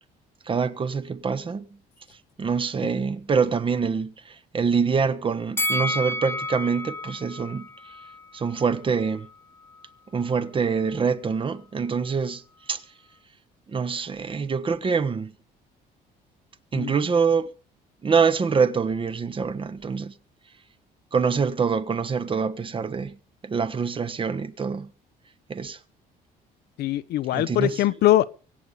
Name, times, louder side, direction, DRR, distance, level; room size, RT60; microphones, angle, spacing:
voice 1, 0.5-1.7 2.4-7.7 8.3-9.3 10.1-12.4 12.7-12.8 13.7-15.3 16.7-17.5 18.0-20.1 21.1-23.2 23.4-24.9 25.5-25.8 27.3-27.8, right 5 dB, 30° right, 1.2 m, -25 dB
Bell, 5.6-8.8 9.1-9.2, left 1 dB, 15° left, 0.6 m, -31 dB
voice 2, 26.8-28.3, left 14 dB, 70° left, 0.8 m, -22 dB
24.5 x 8.4 x 5.4 m
cardioid pair, 110°, 17 cm